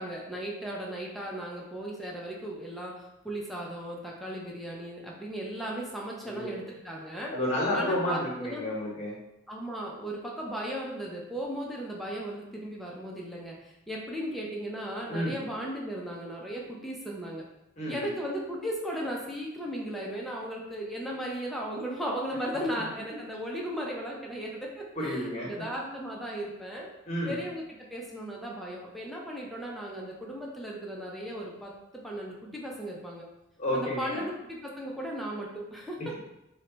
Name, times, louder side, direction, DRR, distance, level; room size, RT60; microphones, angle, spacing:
voice 1, 0.0-7.3 7.7-8.7 9.5-17.4 17.9-26.9 27.3-27.6 27.9-33.2 33.7-36.0, equal, ahead, -3 dB, 0.5 m, -36 dB
voice 2, 6.2-6.6 7.3-9.1 15.1-15.4 17.8-18.0 25.0-25.5 27.1-27.4 33.6-34.2, left 1 dB, 35° left, -4 dB, 1.0 m, -31 dB
3.1 x 2.2 x 3.8 m, 0.90 s
head